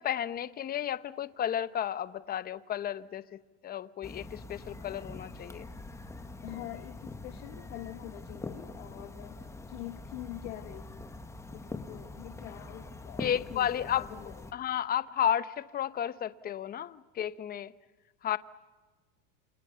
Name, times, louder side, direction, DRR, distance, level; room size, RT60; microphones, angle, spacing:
voice 1, 0.0-5.7 13.2-14.1 14.5-17.7 18.2-18.4, left 10 dB, 25° left, 0.8 m, -32 dB
sound 1, 4.0-14.5, left 2 dB, 5° left, 1.4 m, -44 dB
voice 2, 6.4-11.1 11.5-14.5, left 15 dB, 75° left, 1.9 m, -45 dB
28.0 x 28.0 x 6.9 m
supercardioid pair, 135°, 38 cm